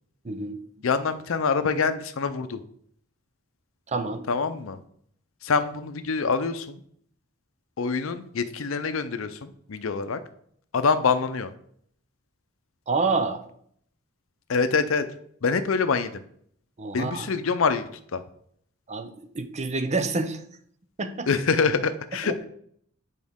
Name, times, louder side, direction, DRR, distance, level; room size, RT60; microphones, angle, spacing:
voice 1, 0.2-0.9 3.9-4.2 12.9-13.4 16.8-17.3 18.9-20.4 21.0-21.3 22.2-22.4, right 3 dB, 35° right, 9 dB, 0.6 m, -28 dB
voice 2, 0.8-2.6 4.3-4.8 5.4-6.8 7.8-10.2 10.7-11.5 14.5-15.0 15.4-16.2 16.9-18.2 21.3-22.5, left 5 dB, 75° left, 11 dB, 0.6 m, -25 dB
8.5 x 4.4 x 3.6 m, 0.65 s
head